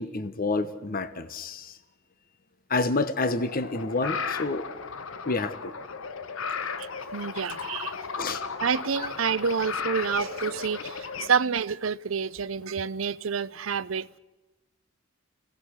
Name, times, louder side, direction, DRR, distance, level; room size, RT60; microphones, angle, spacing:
voice 1, 0.0-1.8 2.7-4.6 5.3-5.7 8.2-8.4, left 3 dB, 45° left, 11 dB, 1.1 m, -28 dB
sound 1, 3.3-11.3, left 5 dB, 80° left, 1.0 m, -35 dB
voice 2, 7.1-7.9 8.6-14.1, right 6 dB, 80° right, 18 dB, 0.6 m, -28 dB
29.5 x 17.5 x 6.5 m, 1.1 s
head